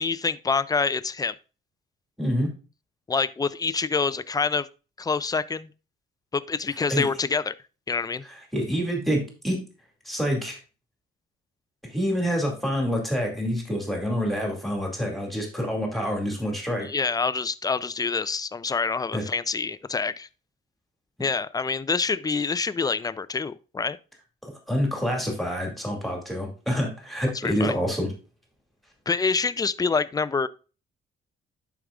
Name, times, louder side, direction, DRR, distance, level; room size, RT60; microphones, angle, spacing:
voice 1, 0.0-1.4 3.1-4.7 5.0-5.7 6.3-7.5 7.9-8.2 16.8-20.3 21.2-24.0 27.4-27.8 29.1-30.5, left 4 dB, 20° left, 0.4 m, -26 dB
voice 2, 2.2-2.5 6.9-7.1 8.2-9.6 10.0-10.6 11.8-16.9 19.1-19.2 24.4-28.1, equal, ahead, 2.4 m, -27 dB
11.5 x 4.8 x 2.5 m
cardioid pair, 90°, 20 cm